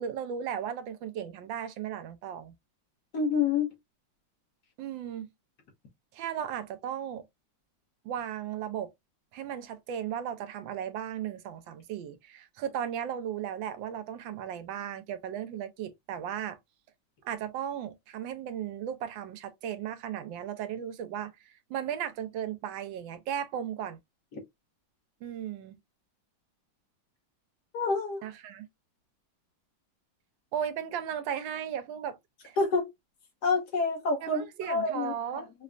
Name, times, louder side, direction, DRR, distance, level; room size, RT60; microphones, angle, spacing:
voice 1, 0.0-2.5 4.8-5.3 6.1-7.2 8.0-8.9 9.3-16.6 17.2-24.0 25.2-25.7 28.2-28.7 30.5-32.2 32.4-32.6 34.2-35.5, right 9 dB, 85° right, 1.4 m, -36 dB
voice 2, 3.1-3.7 27.7-28.2 32.6-32.9 33.4-35.1, left 4 dB, 60° left, 1.5 m, -27 dB
4.8 x 2.1 x 2.5 m
omnidirectional pair, 2.1 m